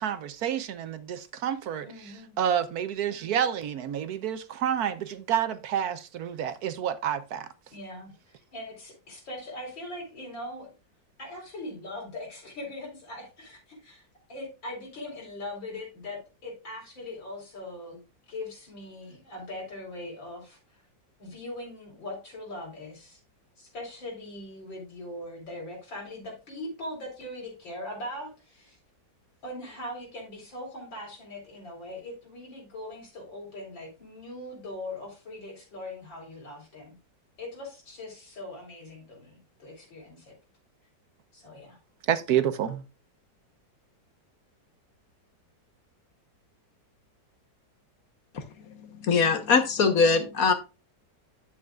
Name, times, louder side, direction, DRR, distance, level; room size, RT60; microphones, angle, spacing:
voice 1, 0.0-1.9 2.4-7.5 42.1-42.8, right 9 dB, 65° right, 1.1 m, -29 dB
voice 2, 1.8-2.4 7.7-10.7 11.2-14.0 14.3-18.0 18.3-20.8 21.2-23.2 23.6-28.8 29.4-37.0 37.4-40.3 41.3-41.8, left 1 dB, 85° left, 4.9 m, -41 dB
voice 3, 48.7-50.5, left 5 dB, 55° left, 1.5 m, -22 dB
10.5 x 7.9 x 2.4 m
omnidirectional pair, 2.0 m